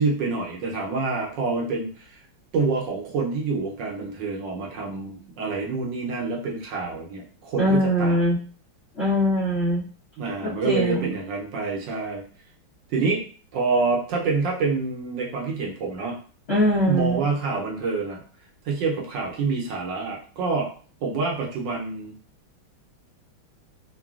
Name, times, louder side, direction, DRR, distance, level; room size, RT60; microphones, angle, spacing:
voice 1, 0.0-2.2 2.5-8.2 10.2-12.2 12.9-13.2 13.5-16.2 16.8-18.2 18.6-20.7 21.0-22.1, right 4 dB, 70° right, -1 dB, 1.3 m, -27 dB
voice 2, 7.6-8.4 9.0-9.8 10.4-11.1 16.5-17.2, equal, 65° left, -8 dB, 0.6 m, -22 dB
3.8 x 2.2 x 2.3 m, 0.41 s
omnidirectional pair, 2.3 m